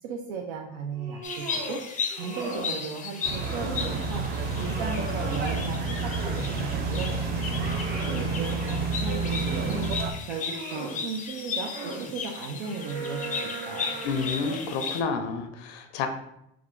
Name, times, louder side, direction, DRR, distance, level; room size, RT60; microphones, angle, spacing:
voice 1, 0.0-1.8 2.1-4.2 4.6-7.9 8.4-9.9 10.3-14.0, right 4 dB, 85° right, 2 dB, 0.6 m, -36 dB
sound 1, 0.9-1.8 2.1-2.8 3.1-4.0 4.5-6.5 7.0-8.4 9.0-9.9 10.3-11.0 11.5-12.1 12.6-14.8, right 2 dB, 60° right, 1.6 m, -38 dB
sound 2, 1.2-15.0, left 5 dB, 25° left, 0.5 m, -36 dB
sound 3, 3.2-10.1, right 4 dB, 35° right, 0.4 m, -30 dB
voice 2, 14.0-16.1, left 5 dB, 75° left, 6 dB, 0.6 m, -30 dB
3.6 x 2.4 x 4.5 m, 0.78 s
cardioid pair, 135°, 30 cm